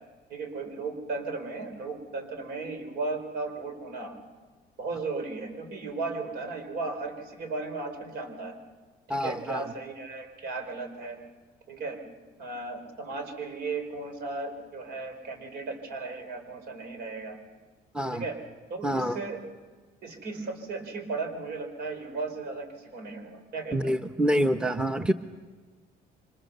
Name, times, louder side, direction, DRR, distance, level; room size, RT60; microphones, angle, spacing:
voice 1, 0.3-4.1 4.8-8.5 9.1-11.2 11.7-12.0 12.4-17.4 18.1-18.4 18.7-19.4 20.0-23.8, right 3 dB, 75° right, 6 dB, 4.6 m, -35 dB
voice 2, 9.1-9.7 17.9-18.2 18.8-19.2 23.7-25.1, equal, 5° right, 8 dB, 1.0 m, -27 dB
28.0 x 25.0 x 6.9 m, 1.4 s
cardioid pair, 110°, 17 cm